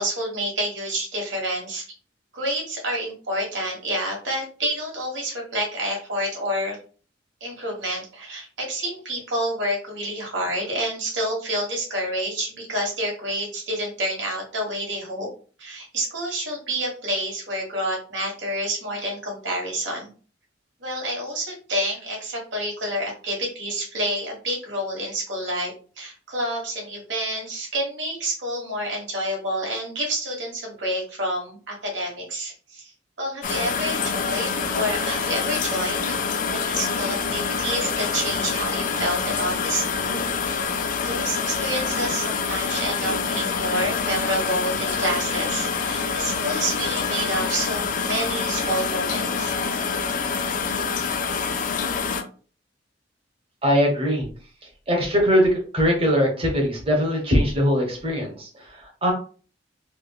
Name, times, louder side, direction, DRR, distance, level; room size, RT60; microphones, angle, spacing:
voice 1, 0.0-1.8 2.3-6.8 7.4-15.3 15.6-20.1 20.8-32.9 33.2-40.2 41.0-49.6, right 1 dB, 70° right, -1 dB, 1.5 m, -28 dB
sound 1, 33.4-52.2, left 5 dB, 45° left, 0.4 m, -26 dB
voice 2, 53.6-54.3 54.9-59.1, equal, 30° right, 1 dB, 1.1 m, -21 dB
3.4 x 2.9 x 2.3 m, 0.39 s
head